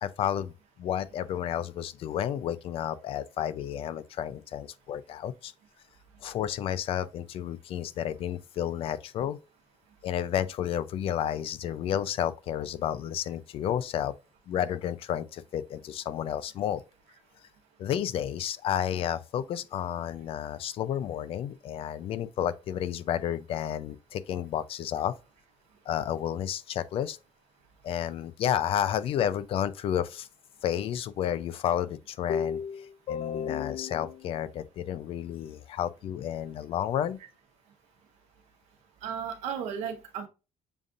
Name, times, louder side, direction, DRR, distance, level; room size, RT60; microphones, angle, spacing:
voice 1, 0.0-0.5 0.8-5.5 6.2-9.4 10.0-14.1 14.5-16.8 17.8-25.1 25.9-27.2 27.8-30.3 30.6-37.2, left 10 dB, 55° left, 0.4 m, -31 dB
voice 2, 39.0-40.3, right 7 dB, 85° right, 0.9 m, -34 dB
6.9 x 2.5 x 2.5 m
cardioid pair, 130°, 11 cm